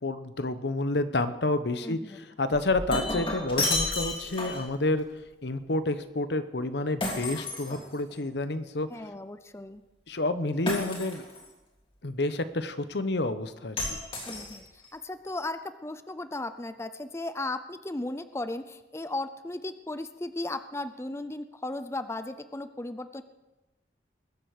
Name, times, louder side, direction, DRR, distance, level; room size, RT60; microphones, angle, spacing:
voice 1, 0.0-5.1 5.4-8.9 10.1-11.2 12.0-14.0, left 2 dB, 75° left, 11 dB, 1.0 m, -29 dB
voice 2, 1.8-2.2 8.9-9.8 14.3-14.6 14.9-23.2, left 2 dB, 15° left, 11 dB, 0.5 m, -36 dB
Shatter, 2.5-4.7 7.0-8.3 10.7-11.5 13.8-14.9, left 2 dB, 30° left, 3.0 m, -32 dB
21.0 x 8.0 x 6.6 m, 1.0 s
head